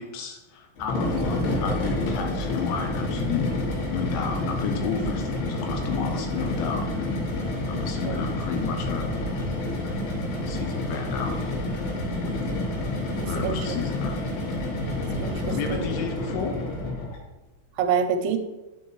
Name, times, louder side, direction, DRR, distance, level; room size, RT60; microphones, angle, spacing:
voice 1, 0.0-7.2 7.7-9.4 10.5-11.6 13.2-14.2 15.5-16.6, left 6 dB, 85° left, 4 dB, 2.5 m, -32 dB
sound 1, 0.8-17.2, left 1 dB, 65° left, 3.2 m, -29 dB
voice 2, 13.2-13.7 15.2-15.9 17.8-18.4, right 6 dB, 90° right, 7 dB, 3.1 m, -27 dB
11.5 x 4.7 x 3.1 m, 1.1 s
omnidirectional pair, 5.2 m